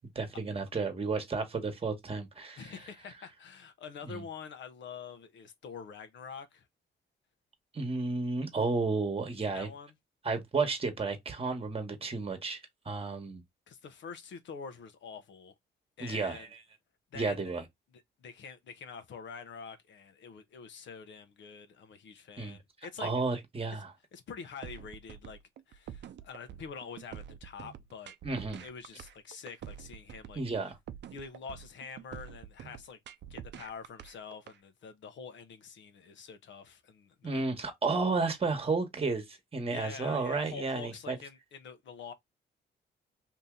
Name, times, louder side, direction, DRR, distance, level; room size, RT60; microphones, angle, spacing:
voice 1, 0.1-2.6 4.0-4.2 7.7-9.7 10.2-12.6 12.8-13.4 16.0-16.5 17.1-17.6 22.4-22.6 23.0-23.9 28.2-28.6 30.4-30.8 37.2-41.2, right 3 dB, 30° right, 1.2 m, -32 dB
voice 2, 2.6-6.7 9.4-9.9 13.7-15.5 16.0-16.5 17.1-17.5 17.9-23.1 24.1-25.4 25.7-28.1 28.6-30.4 31.1-33.0 33.3-37.4 39.7-42.1, left 6 dB, 70° left, 0.8 m, -46 dB
sound 1, 24.6-34.6, right 10 dB, 65° right, 0.5 m, -46 dB
2.8 x 2.7 x 3.6 m
cardioid pair, 75°, 20 cm